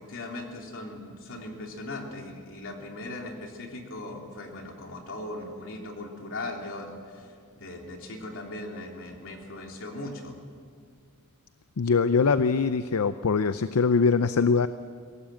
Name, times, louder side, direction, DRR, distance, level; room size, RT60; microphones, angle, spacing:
voice 1, 0.0-10.3, left 2 dB, 65° left, 1 dB, 3.3 m, -39 dB
voice 2, 11.8-14.7, left 5 dB, 80° left, 12 dB, 0.6 m, -22 dB
23.0 x 17.5 x 7.7 m, 2.1 s
head